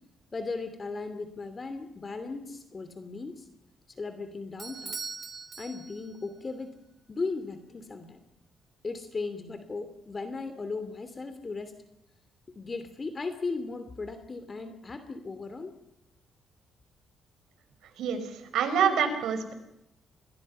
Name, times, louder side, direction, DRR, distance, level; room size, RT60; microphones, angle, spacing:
voice 1, 0.3-3.4 4.0-5.0 5.6-6.8 7.1-8.2 8.8-11.7 12.5-15.7, left 3 dB, 30° left, 9 dB, 2.8 m, -37 dB
Bell / Doorbell, 4.6-6.3, right 4 dB, 35° right, 3.6 m, -41 dB
voice 2, 18.0-19.5, right 7 dB, 80° right, 8 dB, 4.8 m, -27 dB
28.0 x 21.0 x 5.6 m, 0.84 s
cardioid pair, 90°, 0 cm